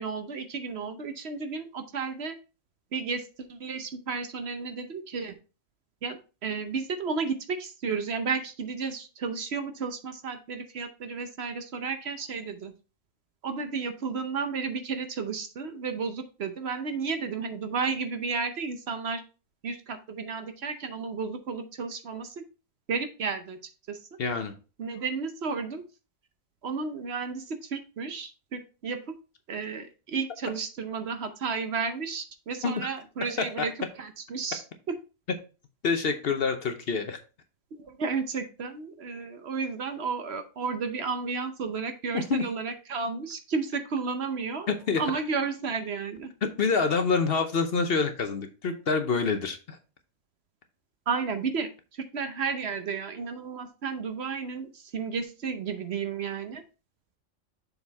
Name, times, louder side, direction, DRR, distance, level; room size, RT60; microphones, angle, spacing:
voice 1, 0.0-2.4 2.9-5.3 6.0-12.7 13.4-19.2 19.6-22.4 22.9-23.6 23.9-24.0 24.8-25.8 26.6-29.1 29.5-33.7 34.0-34.9 37.7-46.3 51.1-56.6, right 5 dB, 60° right, 8 dB, 1.0 m, -32 dB
voice 2, 24.2-24.5 32.6-32.9 35.8-37.2 42.1-42.4 44.7-45.0 46.6-49.8, left 4 dB, 55° left, 7 dB, 0.9 m, -26 dB
6.9 x 4.1 x 4.1 m, 0.32 s
omnidirectional pair, 1.3 m